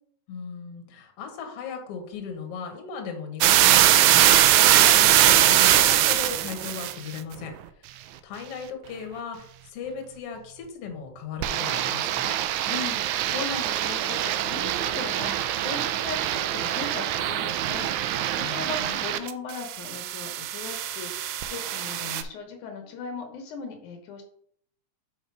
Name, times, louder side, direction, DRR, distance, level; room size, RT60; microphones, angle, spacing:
voice 1, 0.3-12.4 18.4-19.0, left 5 dB, 60° left, 4 dB, 2.0 m, -37 dB
sound 1, 3.4-6.9 11.4-19.3 19.6-22.2, right 12 dB, 80° right, 2.0 m, -22 dB
voice 2, 12.7-24.2, left 4 dB, 80° left, 4 dB, 2.6 m, -38 dB
5.6 x 5.4 x 4.6 m, 0.64 s
omnidirectional pair, 3.4 m